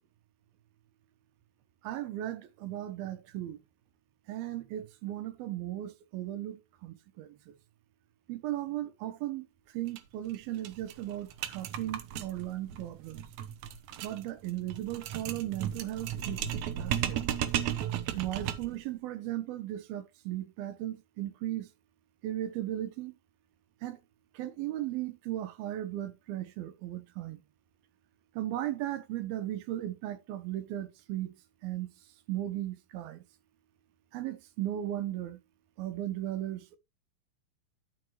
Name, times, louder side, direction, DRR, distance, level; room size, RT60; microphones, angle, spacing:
voice 1, 1.8-3.6 4.3-7.6 8.3-9.5 9.7-13.3 14.0-17.2 18.2-21.7 22.2-23.1 23.8-24.0 24.3-27.4 28.4-31.3 31.6-31.9 32.3-33.2 34.1-35.4 35.8-36.8, right 13 dB, 90° right, 2.8 m, -36 dB
sound 1, 9.9-10.0 10.3-10.4 10.6-18.8, right 10 dB, 75° right, 1.7 m, -35 dB
12.5 x 5.8 x 3.0 m
omnidirectional pair, 4.2 m